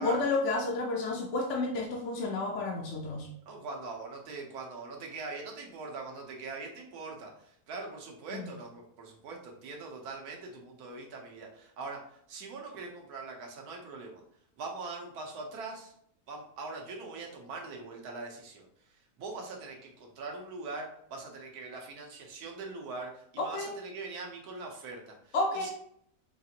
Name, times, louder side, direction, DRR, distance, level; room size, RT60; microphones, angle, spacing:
voice 1, 0.0-3.3 8.3-8.5 23.4-23.7 25.3-25.7, left 2 dB, 60° left, 0 dB, 0.9 m, -31 dB
voice 2, 3.5-12.0 12.3-14.2 14.6-15.9 16.3-18.7 19.2-25.7, right 3 dB, 75° right, 0 dB, 1.4 m, -42 dB
5.6 x 2.5 x 2.8 m, 0.70 s
omnidirectional pair, 1.6 m